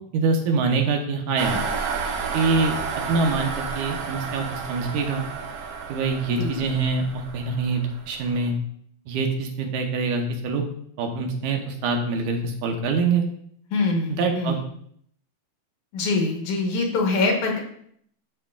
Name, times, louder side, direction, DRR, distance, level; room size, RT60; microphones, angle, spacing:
voice 1, 0.1-1.6 2.3-2.7 3.1-5.2 5.9-8.5 9.1-10.6 11.0-13.2 14.1-14.6, right 4 dB, 90° right, 3 dB, 2.5 m, -24 dB
sound 1, 1.4-8.4, right 5 dB, 65° right, 1.7 m, -31 dB
voice 2, 13.7-14.6 15.9-17.6, left 3 dB, 80° left, 2 dB, 2.7 m, -24 dB
11.5 x 5.6 x 2.4 m, 0.66 s
omnidirectional pair, 3.4 m